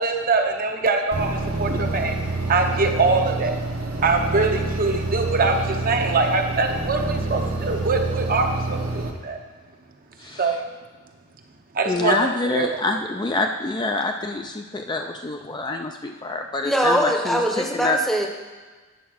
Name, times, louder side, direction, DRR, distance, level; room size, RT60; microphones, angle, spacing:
voice 1, 0.0-3.5 4.0-9.4 10.4-10.6 11.7-12.2 12.5-12.7, right 3 dB, 45° right, 4 dB, 0.8 m, -23 dB
sound 1, 1.1-9.1, right 2 dB, 65° right, 1.0 m, -27 dB
voice 2, 10.2-10.6 11.9-17.4 17.7-18.0, left 2 dB, 20° left, 4 dB, 0.4 m, -26 dB
voice 3, 16.6-18.3, equal, ahead, 2 dB, 0.8 m, -22 dB
9.2 x 4.4 x 6.3 m, 1.4 s
head